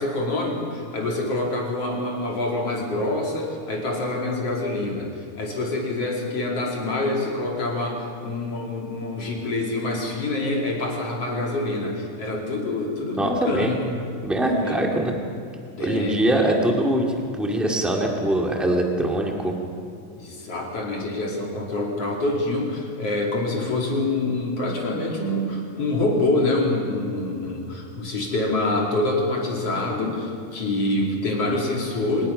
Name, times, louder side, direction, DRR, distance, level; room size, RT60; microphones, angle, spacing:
voice 1, 0.0-13.8 14.6-14.8 15.8-16.6 20.2-32.3, left 2 dB, 45° left, -1 dB, 3.6 m, -26 dB
voice 2, 13.2-13.8 14.2-15.1 15.8-17.1 17.4-19.5, right 1 dB, ahead, 0 dB, 1.1 m, -22 dB
24.5 x 19.5 x 5.7 m, 2.4 s
omnidirectional pair, 4.2 m